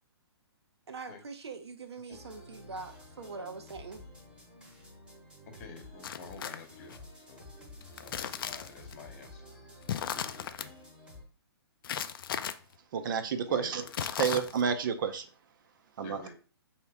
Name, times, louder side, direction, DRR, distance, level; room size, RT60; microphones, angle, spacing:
voice 1, 0.9-4.0, right 4 dB, 85° right, 0.8 m, -43 dB
sound 1, 2.1-11.2, left 1 dB, 5° right, 0.9 m, -51 dB
voice 2, 5.4-9.5 10.1-10.8 13.5-13.9 16.0-16.3, left 4 dB, 35° left, 0.9 m, -49 dB
sound 2, 6.0-7.0 7.8-8.9 9.8-10.7 11.8-12.5 13.8-14.7, left 9 dB, 55° left, 0.4 m, -36 dB
voice 3, 12.9-13.8 14.2-15.3 16.0-16.3, right 6 dB, 50° right, 0.6 m, -30 dB
4.6 x 2.9 x 3.4 m
hypercardioid pair, 145°, 14 cm